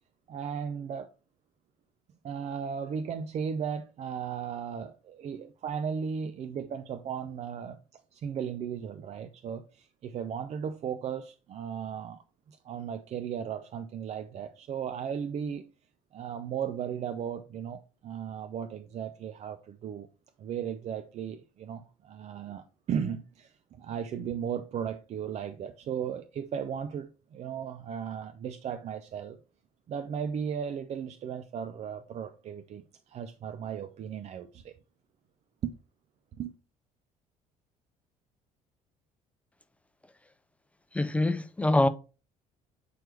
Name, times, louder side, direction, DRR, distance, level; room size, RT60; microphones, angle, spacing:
voice 1, 0.3-1.1 2.2-15.7 16.1-20.1 20.4-29.4 29.9-34.7 35.6-35.7 36.4-36.5, right 7 dB, 35° right, 0.5 m, -36 dB
voice 2, 40.9-41.9, left 2 dB, 5° left, 0.6 m, -24 dB
7.9 x 4.5 x 3.2 m
figure-of-eight pair, 55°, 19 cm